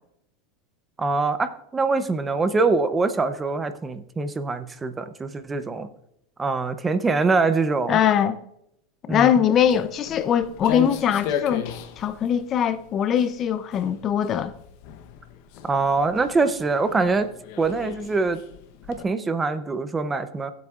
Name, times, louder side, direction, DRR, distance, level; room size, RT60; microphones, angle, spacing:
voice 1, 1.0-5.9 6.4-8.0 9.1-9.3 15.6-17.3 17.6-18.4 18.9-20.5, right 3 dB, 15° right, 0.6 m, -24 dB
voice 2, 7.9-8.4 9.1-11.6 12.0-14.5, left 9 dB, 30° left, 0.5 m, -21 dB
Walk footsteps, 9.5-19.0, left 8 dB, 55° left, 0.8 m, -36 dB
17.5 x 8.0 x 2.4 m
supercardioid pair, 140°, 0 cm